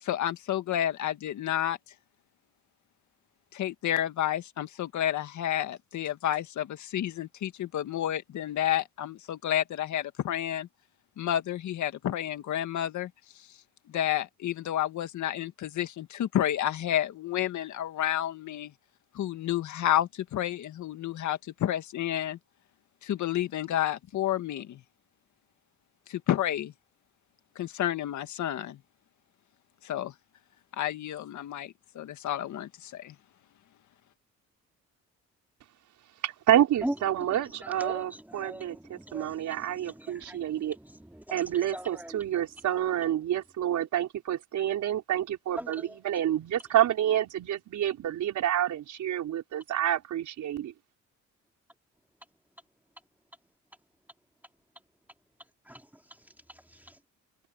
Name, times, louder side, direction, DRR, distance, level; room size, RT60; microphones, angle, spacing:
voice 1, 0.0-1.8 3.5-10.7 11.2-13.1 13.9-18.7 19.1-22.4 23.0-24.8 26.1-26.7 27.6-28.8 29.8-30.1 30.7-33.2, left 11 dB, 75° left, 2.0 m, -30 dB
voice 2, 36.2-40.8 41.3-50.7, right 11 dB, 75° right, 4.7 m, -28 dB
voice 3, 37.3-42.4 45.6-45.9 55.7-55.9 56.5-57.0, right 1 dB, 5° right, 2.3 m, -41 dB
cardioid pair, 90°, 30 cm